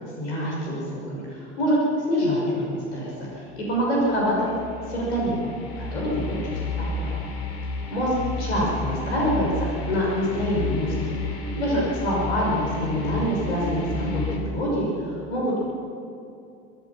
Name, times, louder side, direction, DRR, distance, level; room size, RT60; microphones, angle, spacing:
voice 1, 0.2-4.5 4.9-5.4 5.8-6.4 6.8-7.2 7.9-8.1 8.4-10.9 11.5-15.6, equal, 80° left, -4 dB, 6.2 m, -25 dB
sound 1, 3.7-14.4, left 3 dB, 55° left, 3.4 m, -31 dB
23.5 x 19.0 x 5.8 m, 2.6 s
hypercardioid pair, 70°, 33 cm